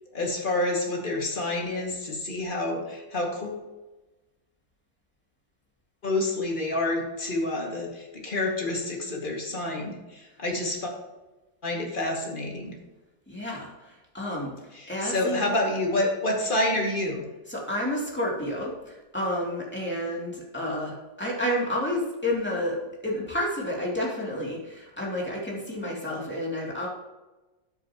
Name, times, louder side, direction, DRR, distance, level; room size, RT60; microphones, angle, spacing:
voice 1, 0.1-3.6 6.0-10.9 11.6-12.8 14.7-17.3, left 2 dB, 30° left, 0 dB, 2.1 m, -28 dB
voice 2, 13.3-15.6 17.5-22.8 23.0-26.9, left 1 dB, 5° left, -4 dB, 2.6 m, -30 dB
13.0 x 7.3 x 2.9 m, 1.1 s
omnidirectional pair, 2.0 m